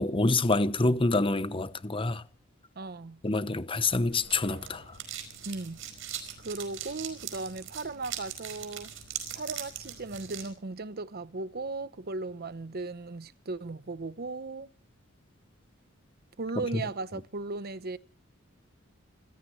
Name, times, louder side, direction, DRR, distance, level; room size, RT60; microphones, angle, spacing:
voice 1, 0.0-2.2 3.2-4.9, left 2 dB, 25° left, 0.9 m, -27 dB
voice 2, 2.8-3.2 5.5-5.8 6.4-8.9 9.3-14.7 16.4-18.0, right 3 dB, 50° right, 0.9 m, -37 dB
sound 1, 3.9-10.5, right 9 dB, 65° right, 5.0 m, -41 dB
26.0 x 16.0 x 3.2 m
head